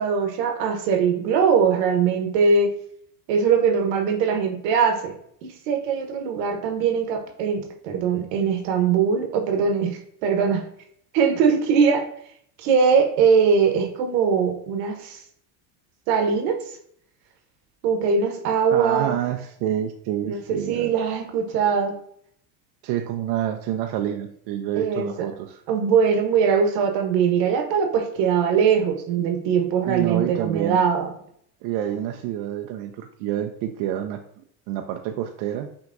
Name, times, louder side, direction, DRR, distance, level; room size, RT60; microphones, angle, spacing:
voice 1, 0.0-2.7 3.3-5.1 5.7-10.6 11.1-12.0 12.6-15.2 16.1-16.6 17.8-19.2 20.2-22.0 24.8-25.1 25.7-31.1, right 6 dB, 75° right, 4 dB, 1.1 m, -21 dB
voice 2, 18.7-20.9 22.8-25.6 28.8-28.9 29.9-30.8 31.6-34.2 34.7-35.7, right 11 dB, 55° right, 5 dB, 0.5 m, -28 dB
5.9 x 2.9 x 2.5 m, 0.67 s
supercardioid pair, 100°, 49 cm